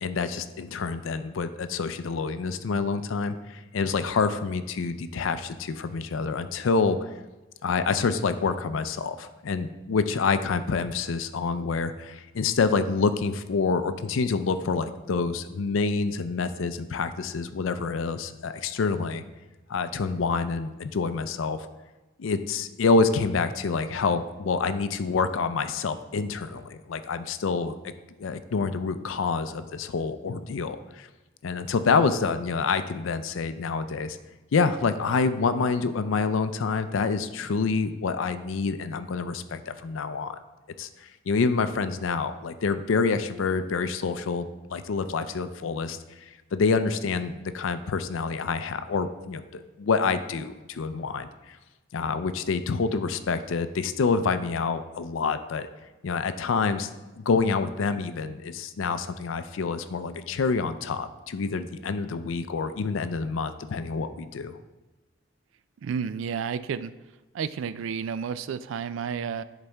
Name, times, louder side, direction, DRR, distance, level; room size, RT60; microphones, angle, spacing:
voice 1, 0.0-7.1 7.6-19.2 19.7-21.7 22.2-27.7 28.2-31.1 31.4-34.2 34.5-40.4 40.8-51.6 51.9-55.7 56.0-56.9 57.2-64.6, left 4 dB, 80° left, 11 dB, 0.4 m, -27 dB
voice 2, 65.8-66.9 67.3-69.4, right 6 dB, 80° right, 14 dB, 0.3 m, -31 dB
10.5 x 4.1 x 3.4 m, 1.1 s
head